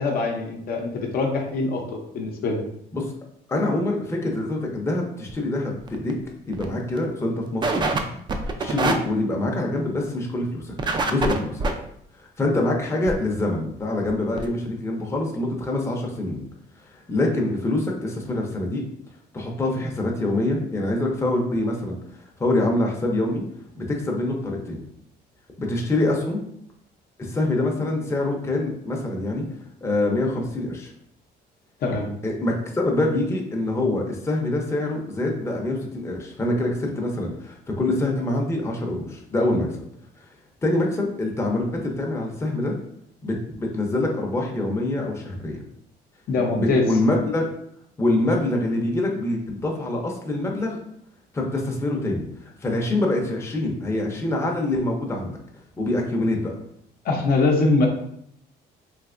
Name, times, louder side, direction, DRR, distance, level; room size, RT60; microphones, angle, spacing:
voice 1, 0.0-2.6 31.8-32.1 46.3-46.9 57.0-57.9, left 3 dB, 60° left, 1 dB, 0.6 m, -23 dB
voice 2, 3.5-6.2 6.5-8.0 8.3-11.7 12.2-16.4 16.9-18.8 19.3-22.0 22.4-23.4 23.7-24.8 25.6-26.4 27.2-29.4 29.8-30.9 32.2-39.8 40.2-40.3 40.6-42.7 43.2-45.6 46.5-47.5 48.0-50.8 51.3-55.4 55.8-56.5, left 2 dB, 15° left, 0 dB, 0.6 m, -25 dB
sound 1, 5.3-5.4 5.8-6.1 6.5-6.7 7.0-7.1 7.6-8.0 8.3-8.9 10.8-11.7 13.1-13.2 13.8-13.9 14.1-14.2 14.4-14.5, right 3 dB, 25° right, 0.3 m, -24 dB
3.3 x 2.8 x 2.5 m, 0.71 s
cardioid pair, 110°, 17 cm